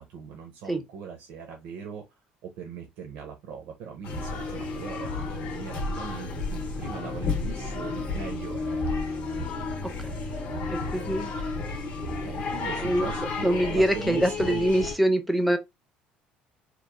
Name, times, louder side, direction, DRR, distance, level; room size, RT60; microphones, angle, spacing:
voice 1, 0.0-8.9 12.2-14.7, right 6 dB, 75° right, 0.5 m, -40 dB
sound 1, 4.0-14.9, left 3 dB, 50° left, 0.7 m, -32 dB
voice 2, 10.7-11.3 12.8-15.6, right 1 dB, ahead, 0.4 m, -25 dB
2.9 x 2.0 x 2.3 m
cardioid pair, 150°, 3 cm